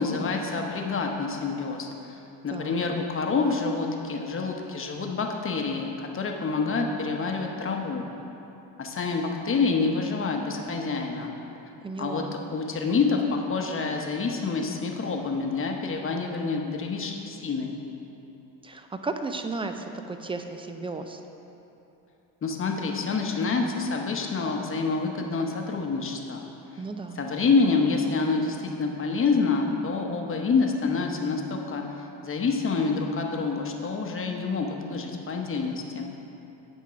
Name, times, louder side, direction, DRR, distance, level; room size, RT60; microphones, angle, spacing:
voice 1, 0.0-2.2 2.4-8.0 8.8-11.3 12.0-12.2 12.5-17.7 22.4-26.4 26.7-26.8 27.2-36.1, left 4 dB, 30° left, 2 dB, 0.9 m, -27 dB
voice 2, 11.8-12.3 18.6-21.2 26.8-27.2, right 3 dB, 15° right, 6 dB, 0.3 m, -34 dB
9.2 x 3.7 x 5.8 m, 2.9 s
supercardioid pair, 90°, 41 cm